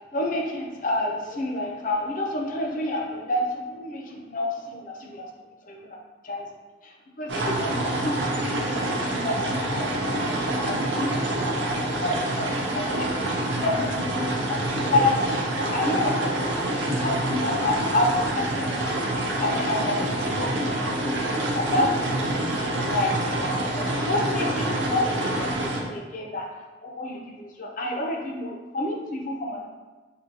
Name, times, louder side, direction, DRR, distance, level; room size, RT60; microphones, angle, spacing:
voice 1, 0.1-5.3 5.7-6.0 6.2-6.5 6.8-13.1 13.6-13.9 14.5-19.0 19.4-23.5 23.7-25.5 25.8-26.5 26.8-29.7, left 2 dB, 45° left, 1 dB, 0.5 m, -29 dB
sound 1, 7.3-25.8, right 1 dB, 75° right, 0.6 m, -26 dB
4.5 x 2.7 x 2.7 m, 1.3 s
head